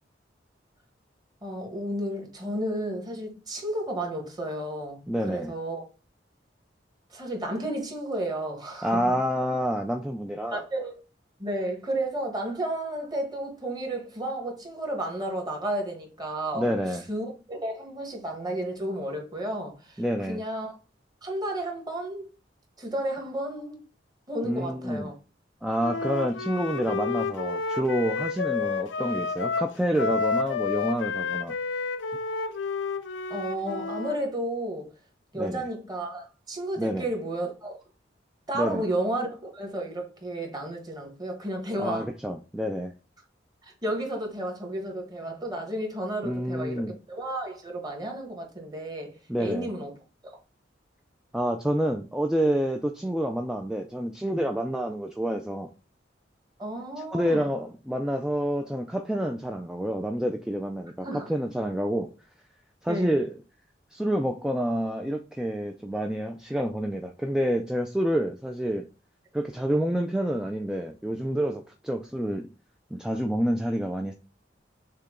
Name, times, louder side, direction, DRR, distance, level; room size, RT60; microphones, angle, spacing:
voice 1, 1.4-5.8 7.1-9.0 10.5-11.0 11.4-20.8 21.2-22.3 22.8-23.8 24.3-25.1 33.3-34.9 35.3-37.7 38.5-42.1 43.6-49.9 56.6-57.5 61.0-61.3 62.9-63.2, right 1 dB, 20° right, 1.3 m, -32 dB
voice 2, 5.1-5.5 8.8-10.6 16.5-17.0 20.0-20.4 24.4-25.1 25.6-31.5 35.3-35.6 36.8-37.1 38.5-38.8 41.8-42.9 46.2-46.9 49.3-49.7 51.3-55.7 57.0-62.1 62.8-63.3 63.9-68.9 69.3-72.5 72.9-74.1, equal, 5° right, 0.3 m, -28 dB
Wind instrument woodwind instrument, 25.8-34.2, left 5 dB, 85° left, 0.5 m, -30 dB
6.6 x 2.2 x 3.6 m
head